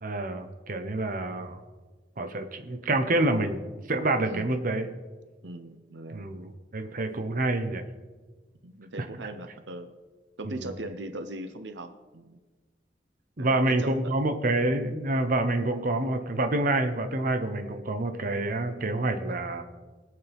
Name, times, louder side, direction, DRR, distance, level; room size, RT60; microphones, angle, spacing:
voice 1, 0.0-1.6 2.2-3.6 3.9-4.9 6.1-7.8 8.9-9.0 10.5-10.7 13.4-19.6, right 2 dB, 50° right, 7 dB, 1.0 m, -27 dB
voice 2, 4.2-4.5 5.4-6.3 8.6-9.9 10.4-12.4 13.4-14.1, right 1 dB, 85° right, 9 dB, 0.9 m, -39 dB
23.0 x 8.6 x 3.6 m, 1.3 s
head